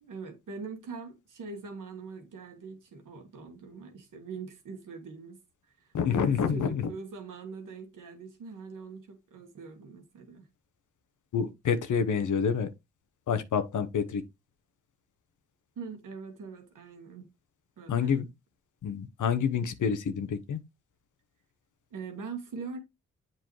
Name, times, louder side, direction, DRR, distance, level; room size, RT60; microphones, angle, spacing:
voice 1, 0.0-5.4 6.1-10.5 15.7-17.3 17.8-18.1 21.9-22.8, right 5 dB, 75° right, 1.7 m, -42 dB
voice 2, 5.9-6.9 11.3-12.7 13.3-14.2 17.9-18.3 18.8-20.6, left 6 dB, 65° left, 1.0 m, -28 dB
7.8 x 4.4 x 3.1 m
supercardioid pair, 40°, 32 cm